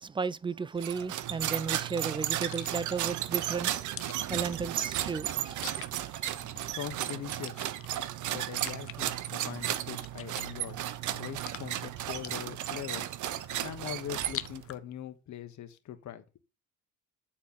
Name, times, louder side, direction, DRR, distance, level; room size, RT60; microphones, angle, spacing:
voice 1, 0.0-3.7 4.3-5.7, right 5 dB, 15° right, 0.3 m, -34 dB
sound 1, 0.8-14.8, left 10 dB, 50° left, 0.6 m, -48 dB
sound 2, 0.8-14.7, right 12 dB, 75° right, 0.7 m, -34 dB
voice 2, 6.7-7.6 8.3-10.8 11.1-13.1 13.6-16.2, left 10 dB, 70° left, 1.3 m, -41 dB
8.6 x 4.5 x 5.5 m
cardioid pair, 90°, 30 cm